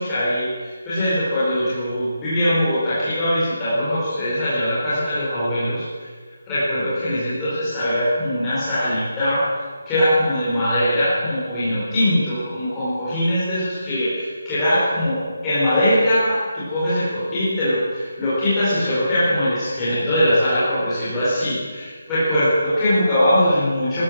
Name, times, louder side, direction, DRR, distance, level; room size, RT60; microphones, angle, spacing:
voice 1, 0.0-5.8 6.5-9.4 9.9-24.0, equal, 10° left, -13 dB, 4.5 m, -21 dB
14.0 x 12.0 x 7.5 m, 1.5 s
figure-of-eight pair, 175°, 0 cm